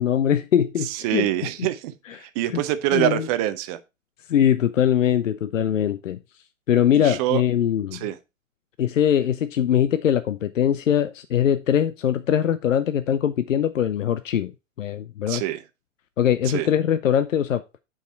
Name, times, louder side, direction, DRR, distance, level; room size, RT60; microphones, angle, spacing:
voice 1, 0.0-1.3 2.2-2.3 2.5-2.6 2.9-3.3 4.3-6.2 6.7-8.0 8.8-14.5 14.8-15.4 16.2-17.6, left 9 dB, 70° left, 0.7 m, -22 dB
voice 2, 0.9-1.9 2.2-3.8 6.9-7.4 7.9-8.2 15.3-15.6 16.5-16.7, right 13 dB, 30° right, 0.7 m, -25 dB
8.0 x 4.8 x 4.3 m
figure-of-eight pair, 110°, 40 cm